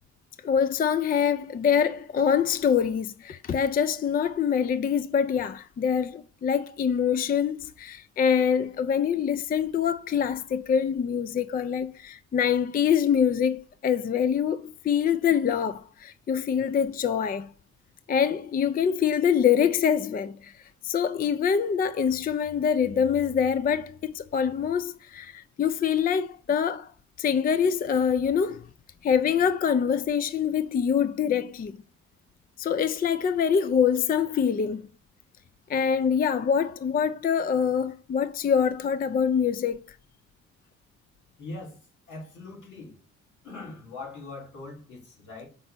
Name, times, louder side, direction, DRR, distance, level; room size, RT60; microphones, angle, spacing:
voice 1, 0.4-17.5 18.1-20.5 20.8-26.9 27.2-28.6 29.0-31.8 32.6-34.8 35.7-39.8, left 7 dB, 30° left, 0.4 m, -25 dB
voice 2, 41.4-41.8 42.1-43.0 43.4-45.5, left 3 dB, 75° left, 3.3 m, -41 dB
5.4 x 3.4 x 5.7 m
cardioid pair, 90°, 30 cm